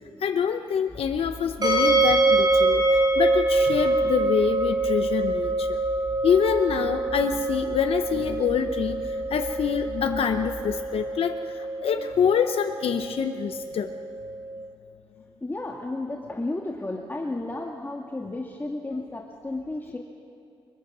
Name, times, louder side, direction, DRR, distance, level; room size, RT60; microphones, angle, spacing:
voice 1, 0.2-5.8 6.2-13.9 18.9-19.0, left 7 dB, 80° left, 6 dB, 0.8 m, -26 dB
sound 1, 0.9-10.8, equal, 5° right, 5.8 m, -42 dB
sound 2, 1.6-14.6, right 2 dB, 45° right, 5.7 m, -25 dB
voice 2, 15.4-20.0, left 2 dB, 20° left, -1 dB, 1.8 m, -33 dB
24.0 x 21.5 x 6.1 m, 2.5 s
cardioid pair, 95°, 10 cm